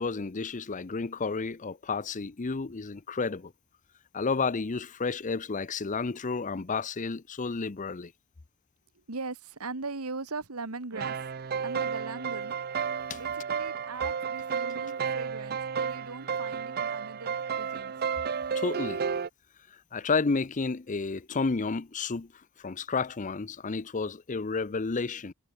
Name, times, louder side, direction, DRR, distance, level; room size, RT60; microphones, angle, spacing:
voice 1, 0.0-3.5 4.1-8.1 13.1-13.2 18.5-19.0 19.7-25.3, left 4 dB, 35° left, 0.6 m, -31 dB
voice 2, 9.1-11.2 11.6-12.5 13.2-17.9, right 3 dB, 75° right, 1.7 m, -40 dB
sound 1, 10.9-19.3, right 6 dB, 45° right, 0.6 m, -32 dB
head